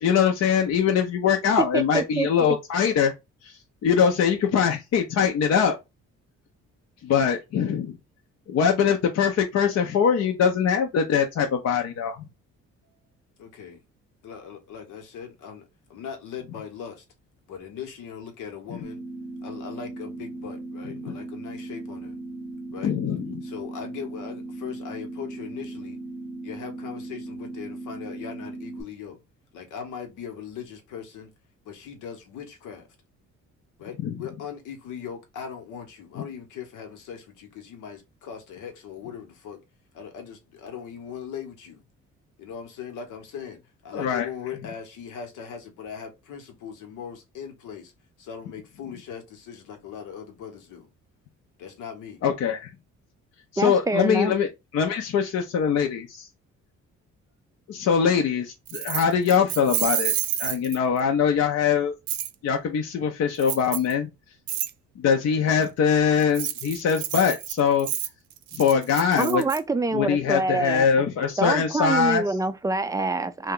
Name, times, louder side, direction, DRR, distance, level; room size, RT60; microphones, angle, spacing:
voice 1, 0.0-3.1 3.4-5.8 7.0-7.9 8.5-12.2 21.1-21.2 22.8-23.3 34.0-34.1 43.9-44.3 52.2-52.7 53.5-54.5 54.7-56.1 57.7-60.1 60.4-61.9 62.4-64.1 65.0-67.9 68.5-69.4 69.9-72.2, left 7 dB, 55° left, 0.6 m, -22 dB
voice 2, 1.7-2.3 53.6-54.3 69.2-70.9 71.4-73.5, right 3 dB, 10° right, 0.3 m, -26 dB
voice 3, 13.4-13.8 14.2-17.0 17.5-19.0 19.4-22.1 22.7-22.9 23.4-26.0 26.4-29.2 29.5-31.3 31.6-32.9 33.8-39.6 39.9-41.8 42.4-47.9 48.2-50.9 51.6-52.2, left 7 dB, 85° left, 1.0 m, -39 dB
sound 1, 18.8-28.8, right 2 dB, 15° left, 0.8 m, -37 dB
Keys jangling, 58.7-61.0 62.1-62.3 63.4-63.9 64.5-64.7 66.2-69.6, right 11 dB, 75° right, 0.5 m, -29 dB
2.8 x 2.2 x 3.7 m
cardioid pair, 90°, 30 cm